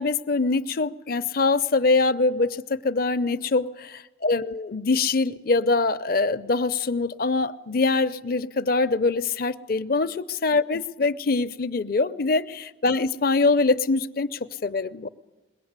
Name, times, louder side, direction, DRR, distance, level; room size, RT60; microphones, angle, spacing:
voice 1, 0.0-15.1, left 3 dB, 55° left, 0.6 m, -24 dB
22.0 x 18.0 x 8.1 m
head